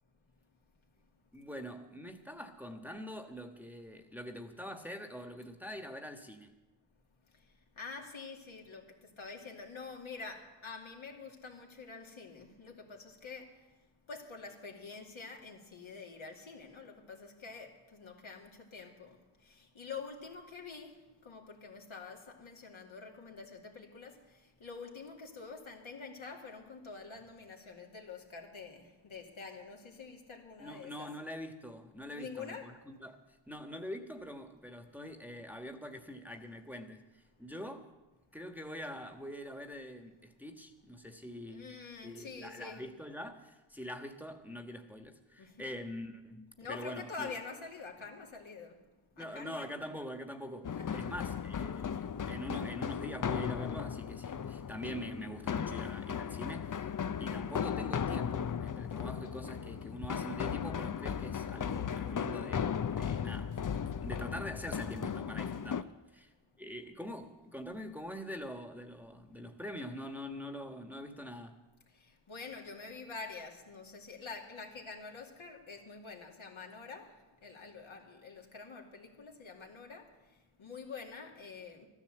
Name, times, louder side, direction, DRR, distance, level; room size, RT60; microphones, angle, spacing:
voice 1, 1.3-6.5 30.6-37.9 38.3-41.8 42.0-47.3 49.2-56.9 57.2-66.3 66.6-71.6, equal, 5° right, 1.5 m, -44 dB
voice 2, 7.8-8.9 9.2-13.6 14.1-31.1 32.1-32.8 41.5-42.8 45.4-45.6 46.6-48.8 49.2-49.7 50.8-51.1 72.0-80.1 80.6-81.9, left 4 dB, 70° left, 2.6 m, -47 dB
sound 1, 50.6-65.8, left 7 dB, 40° left, 0.7 m, -36 dB
13.0 x 10.5 x 7.7 m
cardioid pair, 40°, 50 cm